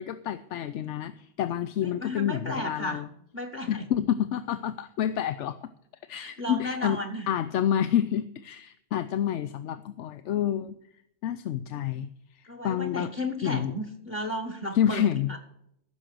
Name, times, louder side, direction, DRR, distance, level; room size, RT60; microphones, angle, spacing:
voice 1, 0.0-3.1 3.7-5.6 6.1-7.0 7.3-10.8 11.2-12.1 12.3-13.1 13.4-13.7 14.7-15.4, left 10 dB, 85° left, 12 dB, 0.9 m, -28 dB
voice 2, 1.8-3.0 3.3-3.9 6.1-7.3 12.5-15.4, equal, 40° left, 5 dB, 1.6 m, -34 dB
15.0 x 6.4 x 6.1 m, 0.74 s
omnidirectional pair, 1.2 m